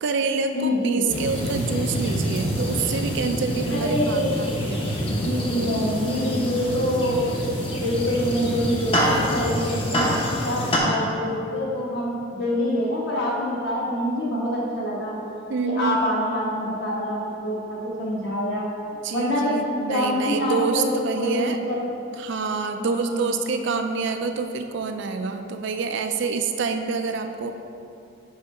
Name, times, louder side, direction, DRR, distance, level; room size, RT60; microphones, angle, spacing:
voice 1, 0.0-4.9 15.5-16.1 19.0-21.6 22.2-27.5, right 4 dB, 55° right, 6 dB, 0.4 m, -27 dB
voice 2, 0.5-1.1 3.7-4.7 5.1-7.2 7.7-10.1 10.4-15.2 15.6-18.7 19.1-21.9 22.8-23.3, equal, 50° left, -5 dB, 1.4 m, -25 dB
sound 1, 1.1-10.8, equal, 25° left, 0.8 m, -26 dB
5.6 x 4.8 x 5.4 m, 2.7 s
head